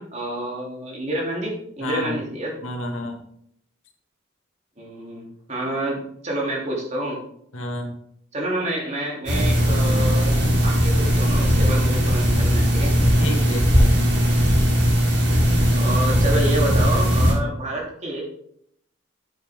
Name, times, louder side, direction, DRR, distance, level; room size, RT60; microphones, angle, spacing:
voice 1, 0.0-2.5 4.8-7.2 8.3-12.9 15.7-18.2, right 1 dB, 35° right, -2 dB, 3.2 m, -28 dB
voice 2, 1.8-2.2 2.6-3.2 7.5-8.0 13.2-13.9, left 1 dB, 85° left, 2 dB, 2.0 m, -30 dB
sound 1, 9.3-17.3, equal, 55° right, 4.0 m, -18 dB
9.4 x 8.5 x 3.7 m, 0.70 s
head